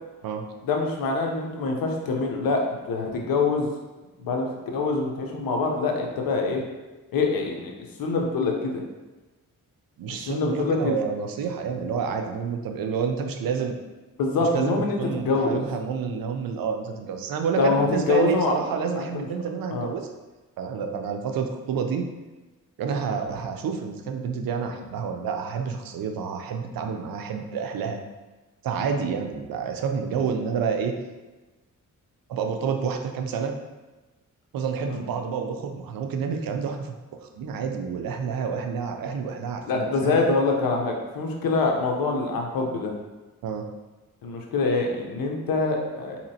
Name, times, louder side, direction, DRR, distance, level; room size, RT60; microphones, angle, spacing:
voice 1, 0.6-3.7 4.2-4.5 4.7-6.6 7.1-7.7 8.0-8.8 10.3-11.0 14.2-15.6 17.6-18.6 19.0-19.3 19.7-19.9 34.9-35.0 39.6-42.9 44.2-46.2, left 3 dB, 90° left, 1 dB, 0.7 m, -25 dB
voice 2, 10.0-13.8 14.4-20.1 20.6-22.1 22.8-28.0 28.6-30.9 32.3-33.6 34.5-36.9 37.2-40.2 43.4-43.7, right 6 dB, 85° right, 5 dB, 0.5 m, -29 dB
4.1 x 2.9 x 2.7 m, 1.2 s
cardioid pair, 90°, 34 cm